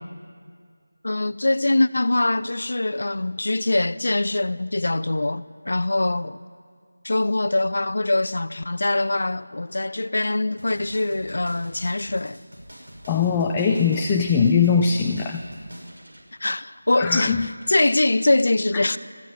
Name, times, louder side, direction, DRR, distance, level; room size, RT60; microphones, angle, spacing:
voice 1, 1.0-6.4 7.0-12.4 16.4-19.0, left 2 dB, 60° left, 0.8 m, -23 dB
sound 1, 10.6-16.2, equal, 65° right, 6.0 m, -45 dB
voice 2, 13.1-15.4 17.0-17.4, left 6 dB, 10° left, 0.6 m, -20 dB
21.0 x 14.0 x 9.8 m
figure-of-eight pair, 170°, 0 cm